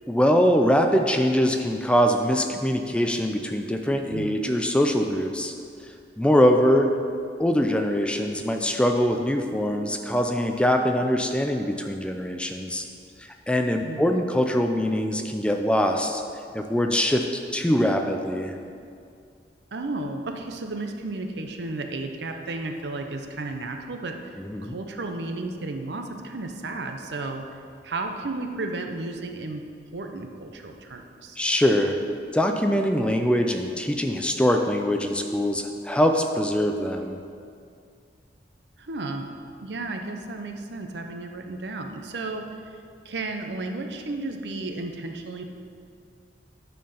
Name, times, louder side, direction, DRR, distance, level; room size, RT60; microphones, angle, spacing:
voice 1, 0.1-5.5 6.2-6.9 7.4-12.9 13.2-16.2 16.5-17.2 17.5-18.6 24.4-24.7 31.4-32.0 32.3-37.2, equal, 5° left, 4 dB, 0.4 m, -23 dB
voice 2, 19.7-24.3 24.6-29.6 29.9-31.4 38.8-39.3 39.6-42.6 43.0-45.4, right 2 dB, 75° right, 5 dB, 0.7 m, -33 dB
9.2 x 4.4 x 5.5 m, 2.3 s
head